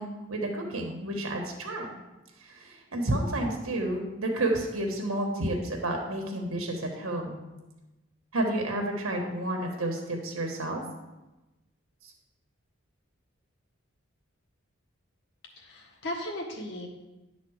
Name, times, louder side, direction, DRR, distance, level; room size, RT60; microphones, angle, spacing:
voice 1, 0.0-1.9 2.4-7.4 8.3-10.8 12.0-12.1, right 1 dB, 85° right, 2 dB, 1.4 m, -30 dB
voice 2, 15.6-16.9, left 1 dB, 55° left, -1 dB, 1.7 m, -36 dB
11.0 x 4.0 x 6.4 m, 1.0 s
head